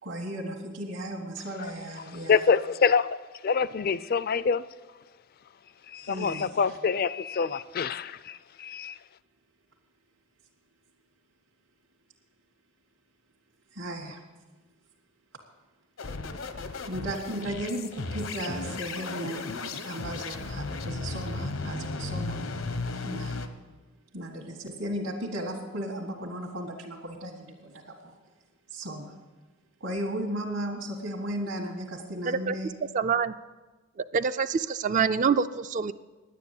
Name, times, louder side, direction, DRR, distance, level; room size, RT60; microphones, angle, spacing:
voice 1, 0.0-2.5 6.0-6.6 13.7-14.2 16.9-22.4 23.0-23.5 24.1-28.2 28.7-29.1 29.8-32.7, right 1 dB, 70° right, -3 dB, 1.6 m, -35 dB
voice 2, 2.3-3.1 3.4-4.6 5.9-9.0, left 5 dB, 45° left, 16 dB, 0.4 m, -26 dB
sound 1, 16.0-23.5, left 3 dB, 80° left, 0.9 m, -35 dB
voice 3, 32.9-33.3 34.1-35.9, right 6 dB, 40° right, 12 dB, 0.3 m, -25 dB
10.5 x 9.3 x 8.2 m, 1.2 s
head